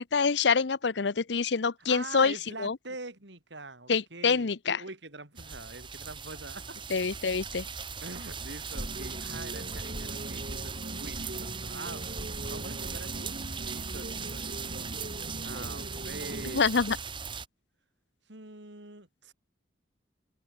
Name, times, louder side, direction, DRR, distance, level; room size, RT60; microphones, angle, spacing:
voice 1, 0.0-2.3 2.6-2.8 3.9-4.8 6.9-7.6 16.5-17.0, left 5 dB, 75° left, 0.7 m, -26 dB
voice 2, 1.9-4.5 4.8-6.8 8.0-13.3 13.6-14.9 15.4-16.7 18.3-19.3, right 2 dB, 80° right, 4.9 m, -44 dB
sound 1, 5.4-17.5, right 5 dB, 25° right, 4.3 m, -39 dB
sound 2, 8.7-16.6, right 1 dB, 45° right, 2.6 m, -41 dB
open air
head